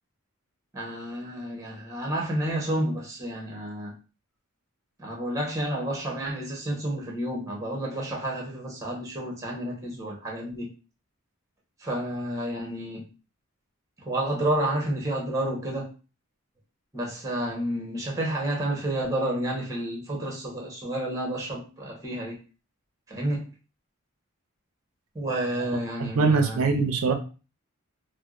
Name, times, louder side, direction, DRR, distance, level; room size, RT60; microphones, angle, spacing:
voice 1, 0.7-4.0 5.0-10.7 11.8-13.1 14.0-15.9 16.9-22.4 23.1-23.5 25.1-26.6, right 1 dB, 15° right, 0.9 m, -30 dB
voice 2, 26.0-27.1, right 4 dB, 85° right, 0.5 m, -22 dB
4.4 x 2.0 x 2.4 m
head